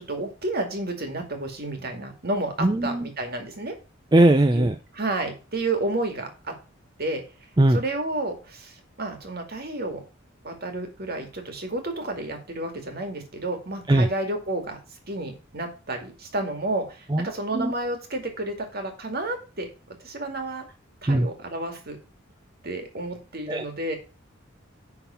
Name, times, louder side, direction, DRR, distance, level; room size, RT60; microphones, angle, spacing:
voice 1, 0.0-3.7 4.5-4.6 5.0-6.5 7.0-7.2 7.7-10.0 10.4-14.8 15.1-19.7 20.0-20.6 21.0-22.0 22.6-24.0, right 2 dB, 50° right, 4 dB, 2.2 m, -31 dB
voice 2, 2.6-3.1 4.1-4.8 7.6-7.8 13.9-14.1 17.1-17.7 21.1-21.3 23.5-23.6, right 1 dB, 20° right, 6 dB, 0.5 m, -20 dB
10.0 x 4.0 x 5.7 m, 0.32 s
head